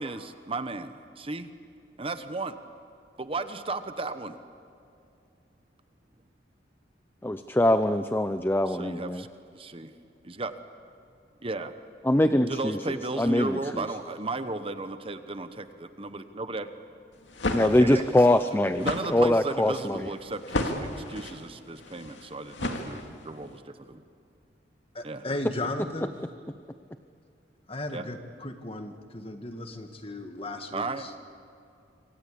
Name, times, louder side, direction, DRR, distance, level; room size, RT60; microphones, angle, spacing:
voice 1, 0.0-1.5 2.0-2.6 3.2-4.4 8.7-9.3 9.5-9.9 10.2-10.5 11.4-11.7 12.5-16.7 17.6-18.4 18.8-24.0 25.0-25.2 27.9-28.0 30.7-31.2, right 3 dB, 30° right, 10 dB, 1.0 m, -35 dB
voice 2, 7.2-9.2 12.1-12.8 13.2-13.8 17.5-20.0, left 1 dB, 10° left, 10 dB, 0.6 m, -23 dB
sound 1, 17.1-23.4, left 1 dB, 85° left, 2.4 m, -34 dB
voice 3, 24.9-26.1 27.7-31.2, left 2 dB, 30° left, 6 dB, 1.7 m, -36 dB
26.5 x 25.0 x 8.5 m, 2.4 s
head